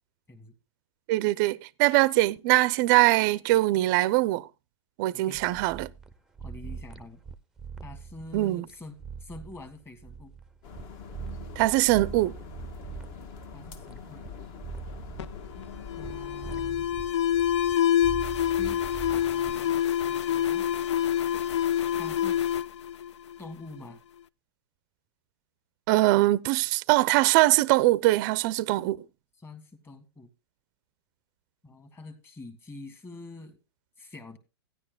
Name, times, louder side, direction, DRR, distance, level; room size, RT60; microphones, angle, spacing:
voice 1, 1.1-4.5 5.0-5.9 8.3-8.6 11.6-12.4 25.9-29.0, right 18 dB, 45° right, 0.5 m, -22 dB
voice 2, 5.1-5.5 6.4-7.2 7.8-10.3 13.5-14.3 15.5-15.7 16.0-16.9 18.6-19.8 20.1-20.6 21.9-22.4 23.4-24.0 29.4-30.3 31.6-33.6 34.0-34.4, left 2 dB, 15° left, 1.6 m, -46 dB
sound 1, 5.3-10.8 11.1-14.3 14.6-16.1 16.4-17.7 18.0-19.5, right 5 dB, 5° right, 0.6 m, -42 dB
sound 2, 10.6-16.6, left 5 dB, 45° left, 1.5 m, -44 dB
Alarm, 15.2-23.8, left 10 dB, 75° left, 0.4 m, -27 dB
15.5 x 10.0 x 2.2 m
hypercardioid pair, 125°, 15 cm